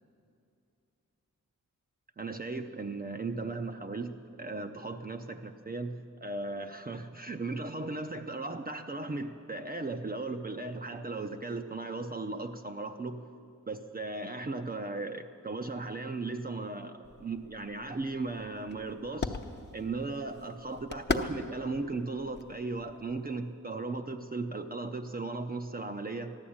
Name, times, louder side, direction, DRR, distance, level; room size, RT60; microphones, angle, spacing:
voice 1, 2.2-13.2 13.7-19.4 19.7-26.3, right 3 dB, 30° right, 6 dB, 0.5 m, -37 dB
sound 1, 17.0-23.3, left 3 dB, 30° left, 0.7 m, -39 dB
14.5 x 11.5 x 8.6 m, 2.6 s
wide cardioid pair, 140°, 32 cm